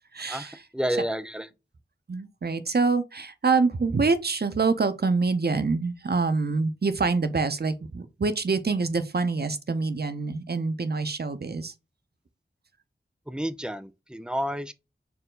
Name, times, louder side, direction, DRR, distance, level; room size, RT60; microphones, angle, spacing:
voice 1, 0.1-0.6 1.0-1.1 2.1-11.7, right 4 dB, 55° right, 0.6 m, -26 dB
voice 2, 0.7-1.5 13.3-14.7, equal, 5° right, 0.4 m, -30 dB
4.5 x 2.2 x 3.8 m
wide cardioid pair, 45°, 19 cm